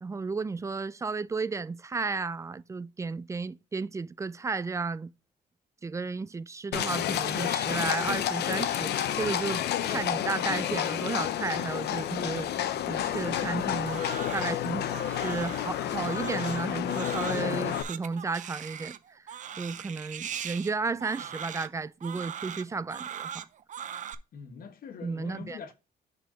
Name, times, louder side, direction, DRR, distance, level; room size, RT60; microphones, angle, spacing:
voice 1, 0.0-5.1 5.8-14.0 14.3-23.4 25.0-25.6, right 4 dB, 15° right, 0.3 m, -33 dB
Livestock farm animals working animals, 6.7-17.8, left 11 dB, 75° left, 0.8 m, -30 dB
Crying sobbing, 13.3-24.1, right 9 dB, 45° right, 0.7 m, -40 dB
voice 2, 19.7-20.0 24.3-25.7, left 6 dB, 55° left, 1.5 m, -44 dB
6.6 x 4.1 x 5.0 m
cardioid pair, 130°, 17 cm